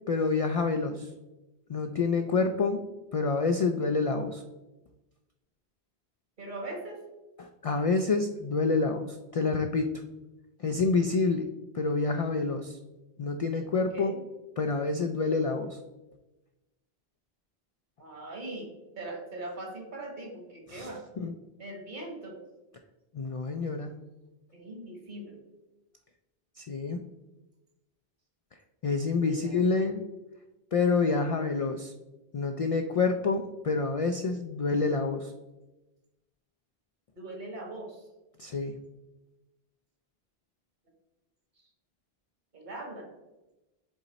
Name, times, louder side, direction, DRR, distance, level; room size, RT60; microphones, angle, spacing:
voice 1, 0.1-1.1 1.7-2.9 3.1-4.4 7.4-9.9 10.6-11.5 11.7-12.8 13.2-14.1 14.6-15.8 20.7-20.9 21.2-21.3 23.1-23.9 26.6-27.0 28.8-30.0 30.7-31.9 32.3-35.3 38.4-38.8, left 4 dB, 55° left, 6 dB, 0.4 m, -27 dB
voice 2, 6.4-7.0 13.7-14.2 18.0-18.7 18.9-21.0 21.6-22.4 24.5-25.4 29.3-29.5 37.2-38.0 42.5-43.1, right 2 dB, 50° right, 1 dB, 1.6 m, -40 dB
7.2 x 4.0 x 4.1 m, 1.0 s
omnidirectional pair, 1.0 m